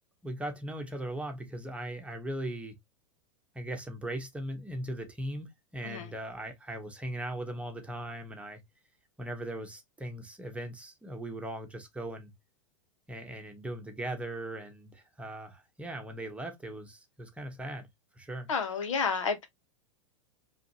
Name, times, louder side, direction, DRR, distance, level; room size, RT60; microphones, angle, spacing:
voice 1, 0.2-2.8 3.5-8.6 9.2-12.3 13.1-17.9 18.2-18.5, right 1 dB, 5° right, 1.1 m, -39 dB
voice 2, 18.5-19.5, left 5 dB, 70° left, 1.1 m, -30 dB
5.0 x 2.6 x 2.9 m
figure-of-eight pair, 95°, 17 cm